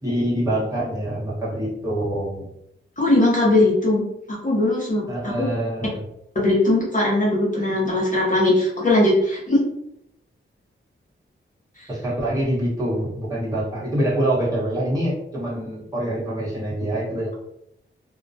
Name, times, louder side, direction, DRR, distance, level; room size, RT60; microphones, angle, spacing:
voice 1, 0.0-2.5 5.1-6.0 11.9-17.3, right 1 dB, 15° right, -9 dB, 1.0 m, -25 dB
voice 2, 3.0-4.0 4.4-5.5 6.3-9.6 11.8-11.9, left 2 dB, 40° left, -5 dB, 0.7 m, -19 dB
2.2 x 2.2 x 2.6 m, 0.77 s
wide cardioid pair, 125°, 21 cm